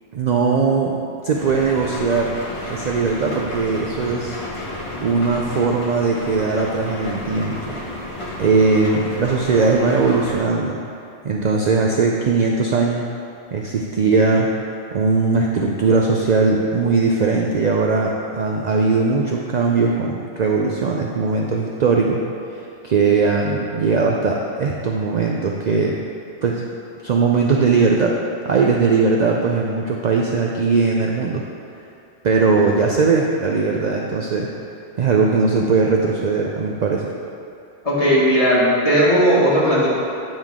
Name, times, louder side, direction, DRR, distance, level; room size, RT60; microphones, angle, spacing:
voice 1, 0.1-2.4 2.7-4.4 5.0-7.8 8.4-10.8 11.2-13.0 13.5-14.5 14.9-22.2 22.5-26.0 26.4-26.6 27.0-28.2 28.4-31.4 32.2-34.5 35.0-37.1, right 4 dB, 55° right, -1 dB, 0.5 m, -19 dB
sound 1, 1.3-10.4, left 1 dB, 65° left, 1.7 m, -32 dB
voice 2, 37.8-39.9, equal, 35° left, -8 dB, 1.8 m, -16 dB
9.2 x 5.2 x 3.6 m, 2.6 s
omnidirectional pair, 1.1 m